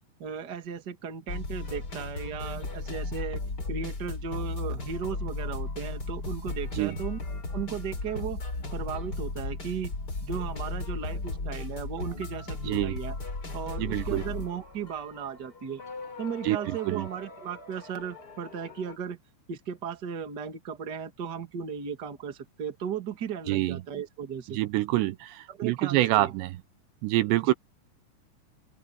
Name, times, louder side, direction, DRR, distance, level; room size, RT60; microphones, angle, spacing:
voice 1, 0.2-3.4 3.7-7.2 7.5-9.9 10.2-13.2 13.5-15.8 16.2-19.2 19.5-24.6 25.5-26.3 27.4-27.5, right 7 dB, 35° right, 1.8 m, -36 dB
sound 1, 1.3-19.0, left 2 dB, 25° left, 4.0 m, -36 dB
voice 2, 13.8-14.2 16.4-16.6 16.9-17.1 23.5-23.8 24.5-26.5 27.0-27.5, right 16 dB, 80° right, 2.8 m, -26 dB
open air
omnidirectional pair, 5.2 m